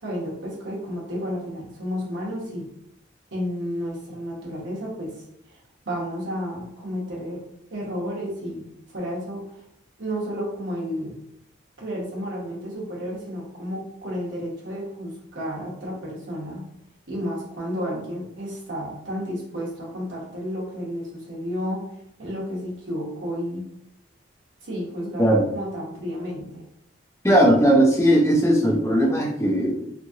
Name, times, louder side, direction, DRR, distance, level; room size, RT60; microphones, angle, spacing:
voice 1, 0.0-2.7 3.3-5.2 5.5-5.6 5.8-7.4 7.7-9.4 10.0-11.1 11.8-16.6 17.1-21.8 22.2-23.6 24.6-26.6, equal, 75° right, -5 dB, 1.1 m, -31 dB
voice 2, 27.2-29.9, right 1 dB, 15° left, -2 dB, 0.5 m, -18 dB
2.9 x 2.5 x 2.7 m, 0.76 s
head